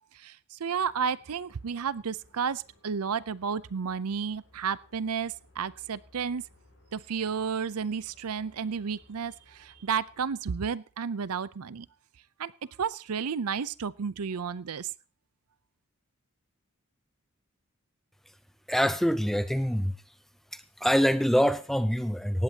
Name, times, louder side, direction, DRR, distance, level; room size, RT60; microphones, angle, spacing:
voice 1, 0.1-6.5 6.9-11.9 12.4-12.5 12.8-14.9, right 6 dB, 85° right, 19 dB, 0.6 m, -32 dB
sound 1, 0.7-10.4, left 1 dB, 70° left, 7.9 m, -61 dB
voice 2, 18.7-20.0 20.5-22.4, equal, ahead, 12 dB, 0.6 m, -25 dB
18.0 x 15.5 x 2.9 m, 0.34 s
head